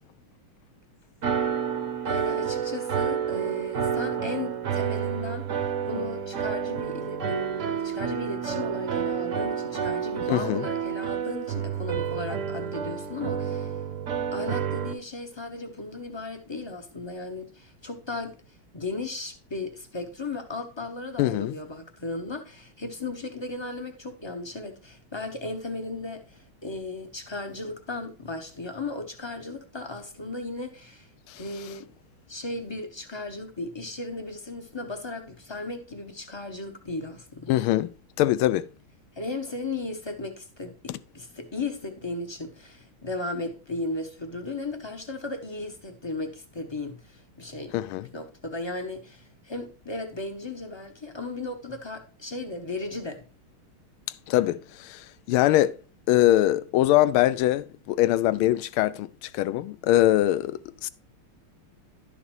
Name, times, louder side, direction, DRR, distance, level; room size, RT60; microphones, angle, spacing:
sound 1, 1.2-14.9, right 8 dB, 50° right, 1.0 m, -29 dB
voice 1, 2.1-7.5 7.8-13.7 14.3-18.3 18.7-31.1 31.4-31.9 32.3-37.5 39.2-53.2, left 2 dB, 25° left, 0.5 m, -36 dB
voice 2, 10.3-10.7 21.2-21.6 31.3-31.4 37.5-38.7 40.9-41.0 47.7-48.1 54.3-55.7 56.1-60.9, left 14 dB, 85° left, 1.4 m, -23 dB
11.5 x 6.8 x 3.1 m
omnidirectional pair, 2.3 m